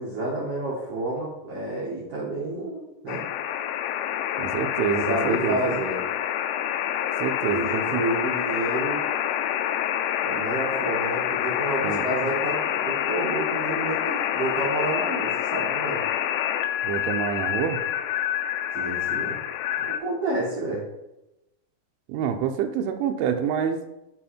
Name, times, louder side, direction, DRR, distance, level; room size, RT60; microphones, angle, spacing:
voice 1, 0.0-3.2 5.1-6.0 7.4-9.0 10.2-16.0 18.7-19.4 19.8-20.8, right 2 dB, 50° right, -7 dB, 1.9 m, -30 dB
sound 1, 3.1-20.0, left 10 dB, 85° left, 2.9 m, -27 dB
voice 2, 4.4-5.8 7.2-8.0 11.8-12.0 16.8-17.8 22.1-23.8, right 8 dB, 80° right, 6 dB, 3.0 m, -27 dB
10.0 x 4.4 x 4.4 m, 0.91 s
omnidirectional pair, 6.0 m